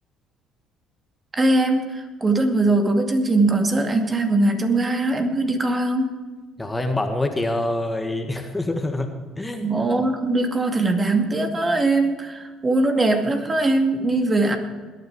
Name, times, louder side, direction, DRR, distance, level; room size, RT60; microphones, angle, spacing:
voice 1, 1.3-6.1 9.6-14.6, right 2 dB, 25° right, 4 dB, 2.3 m, -21 dB
voice 2, 6.6-9.1 9.4-9.7, left 2 dB, 15° left, 5 dB, 1.8 m, -25 dB
21.0 x 9.4 x 4.8 m, 1.4 s
hypercardioid pair, 60°, 0 cm